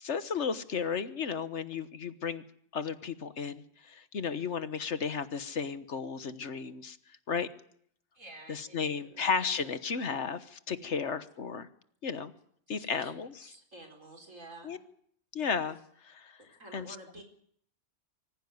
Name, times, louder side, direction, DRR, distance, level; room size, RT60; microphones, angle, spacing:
voice 1, 0.0-2.4 2.7-7.0 7.3-7.5 8.5-11.7 12.0-12.3 12.7-13.3 14.6-14.8 15.3-15.8 16.0-16.4 16.7-16.9, left 6 dB, 65° left, 12 dB, 1.5 m, -34 dB
voice 2, 8.1-9.8 10.7-11.2 12.7-14.8 16.6-17.2, right 1 dB, 85° right, 3 dB, 4.9 m, -51 dB
24.5 x 15.5 x 9.5 m, 0.66 s
omnidirectional pair, 1.3 m